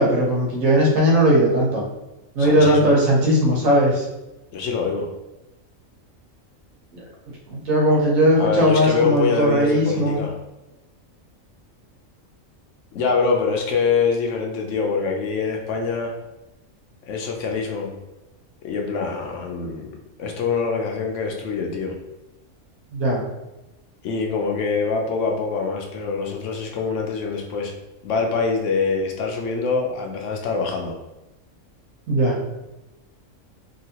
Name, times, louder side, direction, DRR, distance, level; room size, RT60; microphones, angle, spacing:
voice 1, 0.0-1.8 2.3-4.0 6.9-7.0 7.5-10.2 22.9-23.2 32.1-32.4, equal, 85° right, -3 dB, 1.3 m, -18 dB
voice 2, 2.4-3.0 4.5-5.1 8.4-10.3 12.9-16.1 17.1-17.9 18.6-21.9 24.0-27.7 28.0-31.0, left 4 dB, 70° left, 1 dB, 0.9 m, -24 dB
2.9 x 2.7 x 2.8 m, 1.0 s
omnidirectional pair, 1.4 m